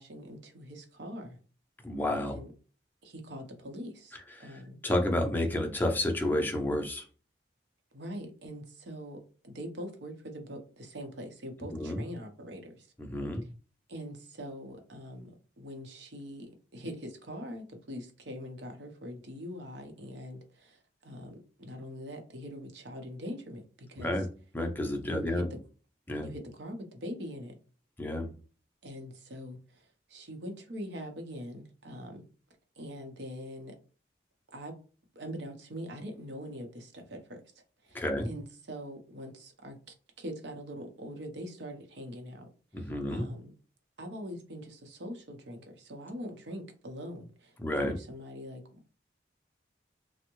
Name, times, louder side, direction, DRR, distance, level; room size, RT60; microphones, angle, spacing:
voice 1, 0.0-1.4 2.2-2.5 3.0-4.8 7.9-12.9 13.9-24.2 25.0-25.4 26.2-27.6 28.8-32.2 32.8-33.7 34.5-34.8 35.1-37.4 37.8-39.8 40.2-42.5 42.8-43.5 44.0-49.0, equal, 75° right, 0.7 m, -43 dB
voice 2, 1.8-2.4 4.1-7.0 11.7-12.0 13.0-13.4 24.0-24.3 24.5-25.5 26.1-26.3 28.0-28.3 37.9-38.3 42.7-43.3 47.6-48.0, left 1 dB, 10° left, 0.5 m, -31 dB
3.4 x 2.1 x 2.9 m
head